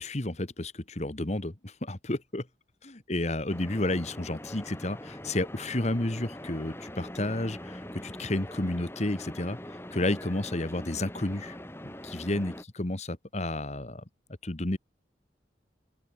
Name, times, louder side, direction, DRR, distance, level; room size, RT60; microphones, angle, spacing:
voice 1, 0.0-2.5 2.8-9.6 9.9-11.6 11.8-14.0 14.4-14.8, left 1 dB, 40° left, 1.6 m, -31 dB
sound 1, 3.5-12.6, left 1 dB, 15° left, 4.4 m, -42 dB
open air
head